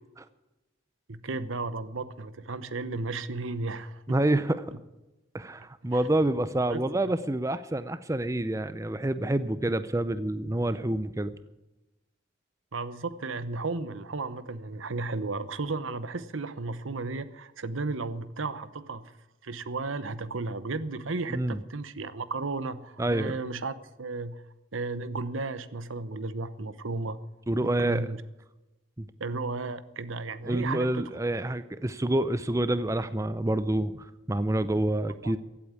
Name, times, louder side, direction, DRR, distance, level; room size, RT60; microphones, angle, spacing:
voice 1, 1.1-4.2 5.9-6.1 6.7-7.1 12.7-19.1 19.4-24.4 24.7-27.2 27.6-28.2 29.2-31.1 35.2-35.3, right 3 dB, 80° right, 14 dB, 0.9 m, -34 dB
voice 2, 4.1-4.6 5.3-11.3 21.3-21.6 23.0-23.4 27.5-28.1 29.0-29.1 30.5-35.4, right 1 dB, 15° right, 13 dB, 0.5 m, -27 dB
15.5 x 8.6 x 9.6 m, 1.0 s
head